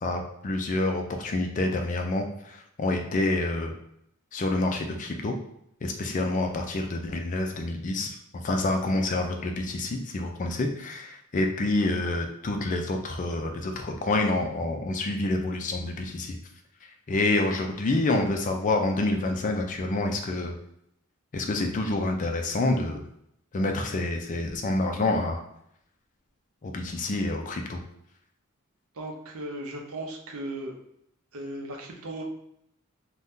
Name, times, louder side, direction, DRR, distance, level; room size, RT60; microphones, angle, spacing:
voice 1, 0.0-3.8 4.3-5.3 5.8-16.4 17.1-20.5 21.3-23.0 23.5-25.4 26.6-27.8, left 2 dB, 35° left, 3 dB, 0.4 m, -27 dB
voice 2, 28.9-30.7 31.3-32.2, right 1 dB, 70° right, 1 dB, 0.6 m, -36 dB
2.7 x 2.2 x 3.5 m, 0.75 s
head